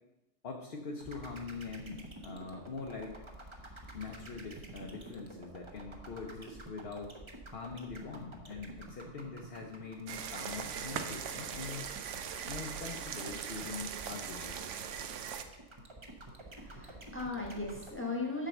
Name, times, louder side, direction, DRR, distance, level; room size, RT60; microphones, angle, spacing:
voice 1, 0.4-3.2 3.9-7.2 7.5-11.9 12.5-14.8, left 4 dB, 55° left, 1 dB, 1.0 m, -43 dB
sound 1, 1.0-18.0, right 2 dB, 25° right, 0.9 m, -49 dB
sound 2, 10.1-15.4, right 7 dB, 75° right, 1.0 m, -40 dB
voice 2, 16.5-18.5, left 3 dB, 10° left, 0 dB, 1.3 m, -38 dB
7.6 x 4.5 x 6.5 m, 0.98 s
omnidirectional pair, 1.3 m